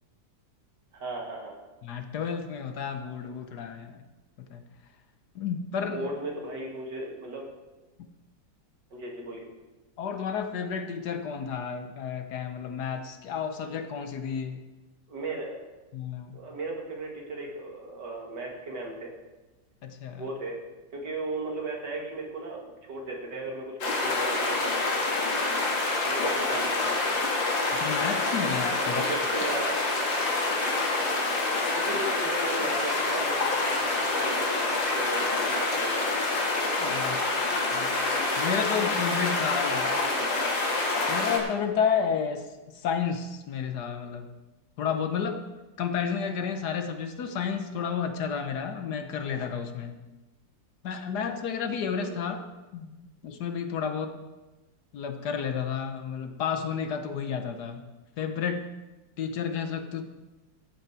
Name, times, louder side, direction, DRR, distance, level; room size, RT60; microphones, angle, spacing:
voice 1, 0.9-1.6 5.8-7.5 8.9-9.5 15.1-15.6 16.3-19.1 20.2-20.6 20.9-25.0 26.1-27.2 28.8-29.7 30.5-30.7 31.7-36.2 39.6-40.3 52.0-52.4, right 2 dB, 65° right, 0 dB, 2.7 m, -36 dB
voice 2, 1.8-4.0 4.4-4.6 5.3-6.1 10.0-14.6 15.9-16.4 19.8-20.3 27.7-29.0 36.8-38.0 38.4-39.9 41.1-44.3 44.8-45.4 45.8-50.0 50.8-52.4 52.7-54.2 54.9-57.8 58.2-58.7 59.2-60.0, left 7 dB, 65° left, 7 dB, 1.3 m, -31 dB
sound 1, 23.8-41.4, left 2 dB, 85° left, 2.5 m, -27 dB
13.0 x 8.4 x 4.7 m, 1.1 s
omnidirectional pair, 2.0 m